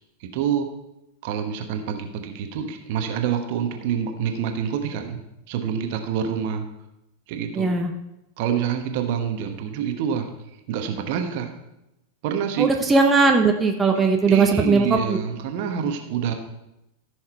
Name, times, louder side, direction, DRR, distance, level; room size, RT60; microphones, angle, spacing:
voice 1, 0.2-0.7 1.2-5.2 5.5-6.7 7.3-7.7 8.4-10.3 10.7-11.5 12.2-12.7 14.0-16.3, right 8 dB, 45° right, 6 dB, 1.3 m, -27 dB
voice 2, 7.5-7.9 12.6-15.2, right 4 dB, 15° right, 3 dB, 1.0 m, -19 dB
14.5 x 6.5 x 4.4 m, 0.89 s
figure-of-eight pair, 90°, 0 cm